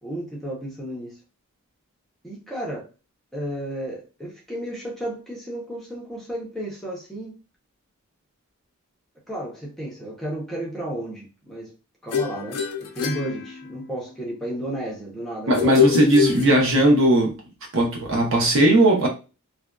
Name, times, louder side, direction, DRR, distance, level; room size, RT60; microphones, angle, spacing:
voice 1, 0.0-1.2 2.2-2.9 3.3-7.3 9.3-11.7 12.0-15.9, right 1 dB, ahead, 0.6 m, -33 dB
sound 1, 12.1-14.1 15.5-17.1, left 7 dB, 90° left, 0.4 m, -25 dB
voice 2, 15.5-17.4 17.7-19.1, right 1 dB, 60° right, 0.7 m, -18 dB
2.5 x 2.2 x 2.2 m
head